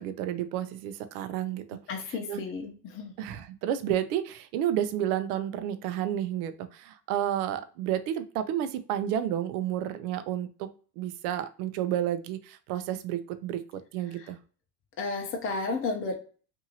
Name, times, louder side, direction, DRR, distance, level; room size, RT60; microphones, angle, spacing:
voice 1, 0.0-2.4 3.2-10.7 11.0-13.7 13.9-14.4, right 11 dB, 75° right, 11 dB, 0.6 m, -31 dB
voice 2, 1.9-3.1 15.0-16.1, left 3 dB, 30° left, 2 dB, 0.7 m, -32 dB
2.7 x 2.6 x 2.7 m, 0.40 s
supercardioid pair, 115°, 45 cm